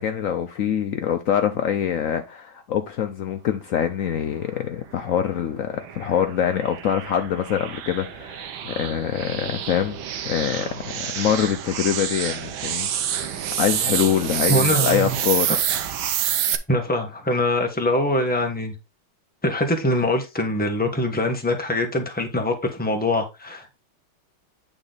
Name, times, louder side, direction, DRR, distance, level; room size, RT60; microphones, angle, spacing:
voice 1, 0.0-10.0 10.2-12.9 13.2-15.5, left 9 dB, 85° left, 0.7 m, -24 dB
sound 1, 5.0-16.6, right 10 dB, 75° right, 1.5 m, -28 dB
voice 2, 14.5-15.2 15.5-15.6 16.7-18.7 19.4-23.8, left 1 dB, 5° left, 1.0 m, -23 dB
9.0 x 4.0 x 3.9 m
omnidirectional pair, 2.2 m